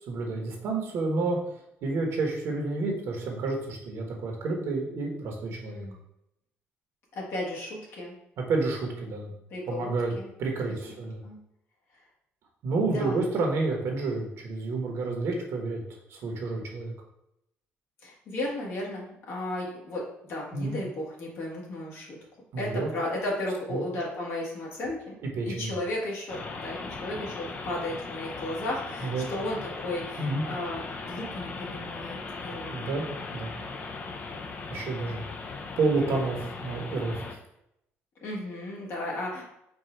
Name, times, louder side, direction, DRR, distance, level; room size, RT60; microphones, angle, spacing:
voice 1, 0.1-1.4 1.8-5.8 8.4-9.3 9.7-10.1 10.4-11.2 12.6-16.9 20.5-20.8 22.5-22.9 23.7-23.8 25.4-25.7 29.0-29.3 30.2-30.4 32.7-33.0 33.3-33.6 34.7-35.2 35.8-37.4, right 3 dB, 65° right, 1 dB, 1.1 m, -29 dB
voice 2, 5.6-6.0 7.1-8.1 9.5-10.3 11.2-11.4 12.9-13.2 18.0-22.2 22.6-25.2 25.4-32.9 38.2-39.5, left 1 dB, 60° left, -4 dB, 1.6 m, -34 dB
sound 1, 26.3-37.3, left 4 dB, 35° left, 0.5 m, -38 dB
4.5 x 2.5 x 4.4 m, 0.81 s
cardioid pair, 120°, 5 cm